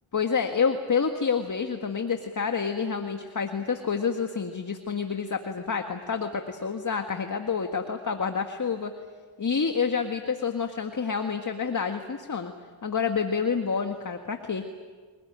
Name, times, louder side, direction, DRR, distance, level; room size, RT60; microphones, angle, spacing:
voice 1, 0.1-8.9 9.4-12.5 12.8-14.6, left 6 dB, 40° left, 5 dB, 1.8 m, -28 dB
27.5 x 19.0 x 9.1 m, 1.5 s
cardioid pair, 60°, 49 cm